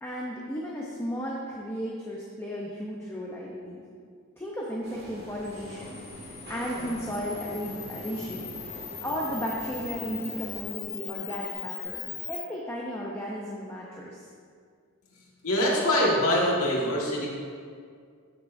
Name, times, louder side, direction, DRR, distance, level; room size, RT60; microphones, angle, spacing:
voice 1, 0.0-3.9 4.4-12.0 12.3-14.3, equal, 10° left, -4 dB, 0.7 m, -35 dB
sound 1, 4.8-10.7, right 1 dB, 50° right, 2.2 m, -43 dB
Camera, 5.4-12.4, left 9 dB, 40° left, 0.9 m, -40 dB
voice 2, 15.4-17.3, equal, 90° left, -4 dB, 1.9 m, -24 dB
14.0 x 6.6 x 2.7 m, 2.2 s
head